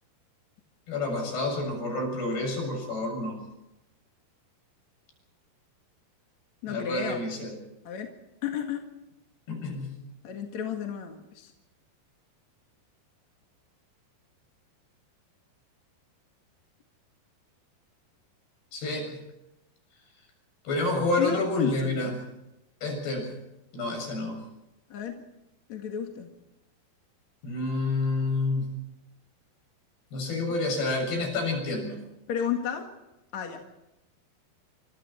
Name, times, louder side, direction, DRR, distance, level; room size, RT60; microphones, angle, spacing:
voice 1, 0.9-3.4 6.7-7.5 9.5-9.9 18.7-19.2 20.7-22.1 22.8-23.3 23.7-24.4 27.4-28.7 30.1-32.0, left 2 dB, 80° left, 3 dB, 9.2 m, -29 dB
voice 2, 6.6-7.2 7.8-8.1 8.4-8.9 10.2-11.5 21.2-22.1 24.9-25.3 25.7-26.3 32.3-32.9 33.3-33.6, left 8 dB, 50° left, 3 dB, 2.8 m, -32 dB
28.5 x 25.5 x 4.4 m, 0.92 s
omnidirectional pair, 4.6 m